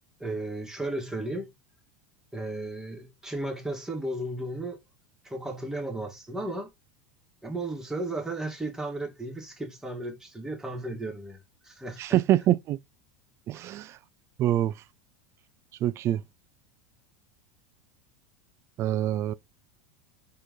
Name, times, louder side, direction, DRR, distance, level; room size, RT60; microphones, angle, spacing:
voice 1, 0.2-1.5 2.3-4.8 5.2-6.7 7.4-12.2 13.5-13.7, right 2 dB, 5° right, 1.7 m, -34 dB
voice 2, 12.0-12.8 13.5-13.9 14.4-14.7 15.8-16.2 18.8-19.3, right 13 dB, 40° right, 0.4 m, -25 dB
4.5 x 3.2 x 3.7 m
supercardioid pair, 115°, 8 cm